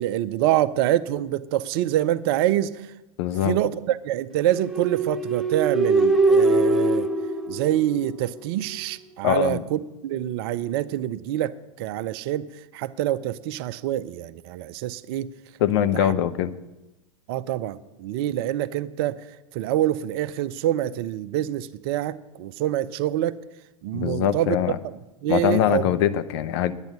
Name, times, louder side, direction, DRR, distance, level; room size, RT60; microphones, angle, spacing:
voice 1, 0.0-2.9 3.4-7.1 7.5-15.3 15.9-16.1 17.3-19.2 19.5-23.4 23.8-24.6 24.8-25.9, right 13 dB, 45° right, 16 dB, 0.5 m, -26 dB
voice 2, 3.2-3.5 9.2-9.6 15.6-16.5 23.9-24.8 25.3-26.7, left 10 dB, 50° left, 10 dB, 0.8 m, -22 dB
sound 1, 4.5-8.4, right 2 dB, ahead, 0.8 m, -22 dB
10.5 x 8.9 x 8.4 m, 0.98 s
figure-of-eight pair, 90°, 18 cm